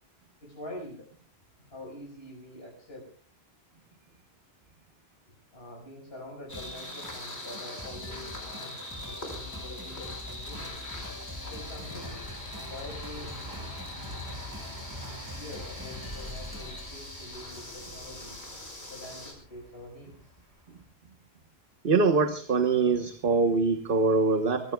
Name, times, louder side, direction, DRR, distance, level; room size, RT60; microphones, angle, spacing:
voice 1, 0.4-1.1 1.6-3.1 5.5-10.8 11.5-12.3 12.7-13.4 15.3-18.4 18.9-20.3, left 1 dB, 70° left, -1 dB, 5.5 m, -45 dB
sound 1, 6.5-19.3, left 1 dB, 85° left, 5.2 m, -42 dB
sound 2, 6.5-16.9, left 1 dB, 20° right, 5.1 m, -45 dB
sound 3, 8.9-20.8, equal, 80° right, 5.6 m, -46 dB
voice 2, 21.8-24.7, right 4 dB, 60° right, 7 dB, 1.4 m, -24 dB
24.5 x 20.5 x 2.3 m, 0.43 s
omnidirectional pair, 1.1 m